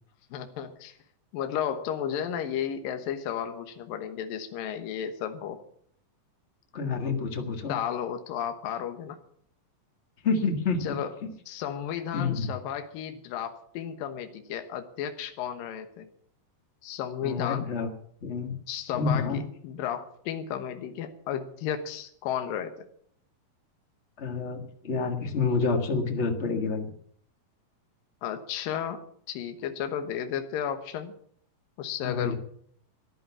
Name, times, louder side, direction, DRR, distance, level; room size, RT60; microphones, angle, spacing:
voice 1, 0.3-0.9 1.3-5.6 7.7-9.2 10.8-11.1 11.5-16.1 16.8-17.7 18.7-22.7 28.2-29.0 29.3-31.1 31.8-32.4, left 9 dB, 75° left, 7 dB, 2.8 m, -33 dB
voice 2, 6.7-7.7 10.2-10.8 11.2-11.3 12.1-12.5 17.2-17.9 18.2-18.6 19.0-19.4 24.2-26.9 32.0-32.4, left 4 dB, 45° left, 5 dB, 0.8 m, -28 dB
14.5 x 11.0 x 7.2 m, 0.62 s
omnidirectional pair, 4.1 m